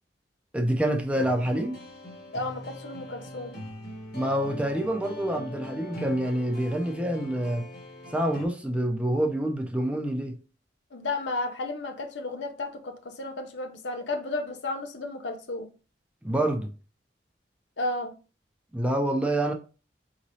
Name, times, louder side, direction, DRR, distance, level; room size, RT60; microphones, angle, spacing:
voice 1, 0.5-1.8 4.1-7.7 8.1-10.4 16.2-16.7 18.7-19.5, right 1 dB, 5° right, 0.5 m, -27 dB
sound 1, 1.2-8.5, left 1 dB, 55° left, 1.1 m, -41 dB
voice 2, 2.3-3.5 10.9-15.7 17.8-18.1, left 2 dB, 80° left, 0.7 m, -33 dB
5.0 x 3.0 x 2.7 m
head